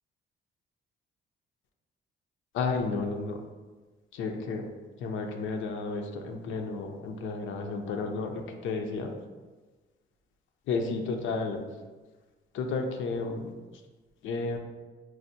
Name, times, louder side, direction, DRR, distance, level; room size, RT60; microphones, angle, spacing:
voice 1, 2.5-3.4 4.1-4.6 5.0-9.1 10.7-11.6 12.5-13.5 14.2-14.6, left 4 dB, 75° left, 4 dB, 0.5 m, -32 dB
4.5 x 2.1 x 2.6 m, 1.3 s
cardioid pair, 90°, 20 cm